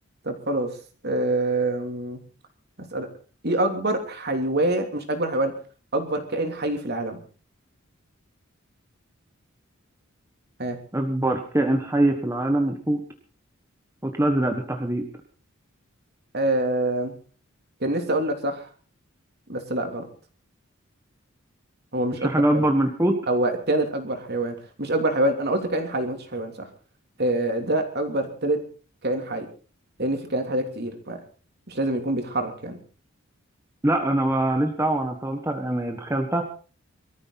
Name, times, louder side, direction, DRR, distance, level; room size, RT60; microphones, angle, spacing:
voice 1, 0.2-0.7 1.0-2.2 2.8-3.1 3.4-5.5 5.9-7.2 10.6-10.8 16.3-17.1 17.8-18.7 19.5-20.1 21.9-22.7 23.3-26.7 27.2-28.6 29.0-29.5 30.0-31.2 31.7-32.8, right 1 dB, 50° right, 5 dB, 3.1 m, -26 dB
voice 2, 10.9-13.0 14.0-15.0 22.2-23.2 33.8-36.4, right 1 dB, 15° right, 3 dB, 1.5 m, -23 dB
22.5 x 14.0 x 4.1 m, 0.38 s
head